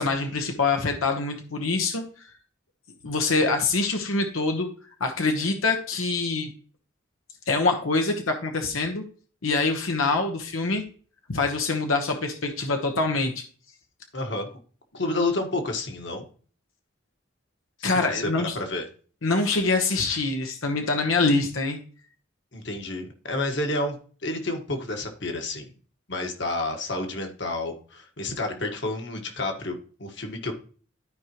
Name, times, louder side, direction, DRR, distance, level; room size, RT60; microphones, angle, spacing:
voice 1, 0.0-2.0 3.0-4.7 5.0-6.5 7.5-9.0 9.4-10.8 11.3-13.4 17.8-18.5 19.2-21.8, left 3 dB, 90° left, 4 dB, 1.1 m, -25 dB
voice 2, 14.1-14.5 14.9-16.3 17.8-18.3 18.5-18.8 22.5-24.0 24.2-25.7 26.1-30.5, left 2 dB, 60° left, 4 dB, 1.6 m, -30 dB
13.0 x 5.1 x 3.0 m, 0.42 s
head